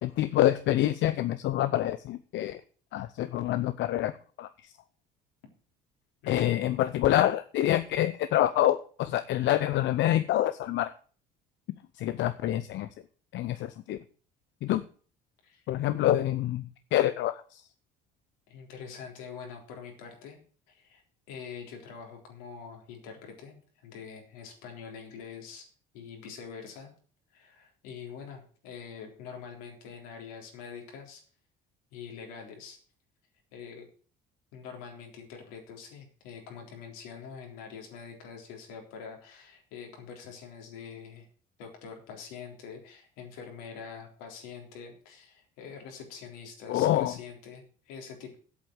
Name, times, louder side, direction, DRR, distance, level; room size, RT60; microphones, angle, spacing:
voice 1, 0.0-2.6 2.9-4.1 4.4-4.7 6.3-10.9 12.0-12.9 13.3-14.0 14.6-14.8 15.7-17.6 46.7-47.1, left 13 dB, 60° left, 12 dB, 0.8 m, -26 dB
voice 2, 6.2-6.6 15.4-15.6 18.5-20.4 20.7-25.6 25.9-26.9 27.3-31.2 31.9-32.8 33.5-33.9 34.5-41.3 41.6-48.3, left 6 dB, 80° left, 2 dB, 3.8 m, -45 dB
8.5 x 7.6 x 8.8 m, 0.41 s
hypercardioid pair, 65°, 21 cm